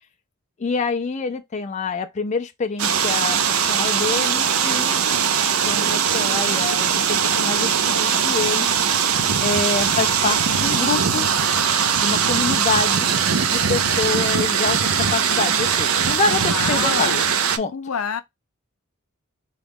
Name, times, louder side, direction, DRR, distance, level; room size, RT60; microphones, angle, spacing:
voice 1, 0.6-5.0 5.6-8.7 9.4-11.3 12.0-13.1 13.4-17.1 17.6-17.7, left 4 dB, 35° left, 0.4 m, -26 dB
sound 1, 2.8-17.6, right 7 dB, 75° right, 0.5 m, -20 dB
voice 2, 16.5-17.3 17.7-18.2, left 6 dB, 85° left, 0.6 m, -27 dB
4.0 x 2.3 x 3.4 m
head